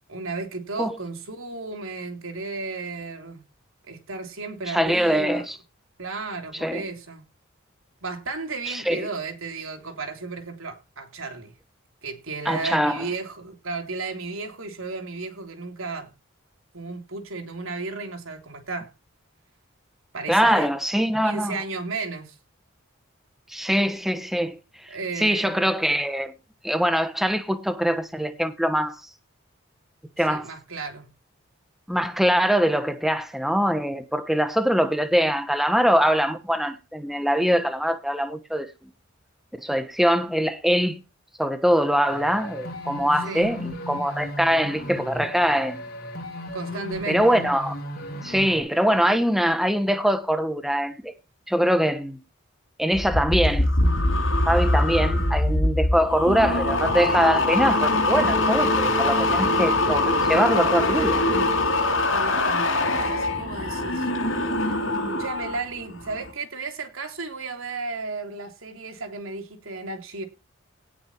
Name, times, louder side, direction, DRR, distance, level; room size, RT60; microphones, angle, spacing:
voice 1, 0.1-3.4 3.9-5.5 6.0-7.2 8.0-11.5 12.0-16.1 16.7-18.9 20.1-20.7 21.2-22.3 24.9-25.7 30.2-31.1 43.2-43.5 46.5-47.4 62.1-62.7 62.9-64.1 65.0-70.3, right 3 dB, 85° right, 3.3 m, -34 dB
voice 2, 4.7-5.5 6.6-6.8 8.7-9.1 12.5-13.1 20.3-21.6 23.5-24.6 25.2-26.3 26.6-29.0 30.2-30.5 31.9-38.7 39.6-41.0 41.4-45.8 47.1-47.8 48.2-51.1 51.5-52.2 52.8-53.7 54.4-61.5, equal, ahead, 1.0 m, -23 dB
sound 1, 42.1-48.6, left 1 dB, 50° left, 7.3 m, -35 dB
sound 2, 52.9-65.6 65.9-66.3, left 2 dB, 70° left, 5.8 m, -23 dB
17.5 x 6.2 x 4.4 m
head